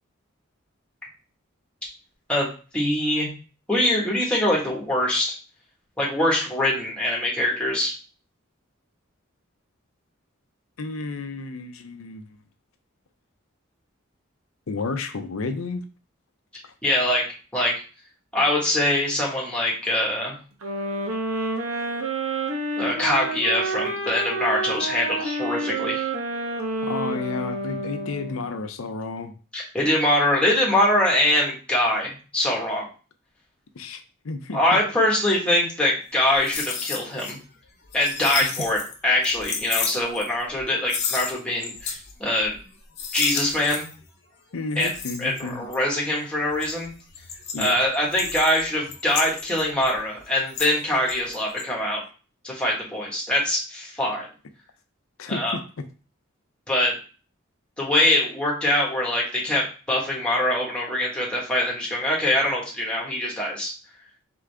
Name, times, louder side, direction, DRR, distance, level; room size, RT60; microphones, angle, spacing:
voice 1, 2.7-3.3 3.7-5.4 6.0-7.9 16.8-17.2 17.5-17.7 18.3-20.3 22.8-26.1 29.5-32.9 34.5-37.4 37.9-42.6 43.1-43.8 44.8-44.9 45.2-46.9 47.6-52.0 52.4-54.3 55.3-55.6 56.7-56.9 57.8-63.7, left 1 dB, 5° left, -4 dB, 1.4 m, -23 dB
voice 2, 10.8-12.3 14.7-15.9 26.8-29.3 33.7-34.8 38.4-38.5 44.5-45.7 47.5-47.8 55.2-55.6, left 3 dB, 75° left, 8 dB, 0.6 m, -31 dB
sound 1, 20.6-28.6, right 2 dB, 85° right, 1.0 m, -29 dB
sound 2, 36.2-37.3 37.6-38.9 39.2-40.6 40.9-42.1 42.4-42.7 43.0-44.0 44.7-45.9 46.4-50.8 51.1-51.6, left 6 dB, 55° left, 0.9 m, -32 dB
3.8 x 3.7 x 3.4 m, 0.36 s
head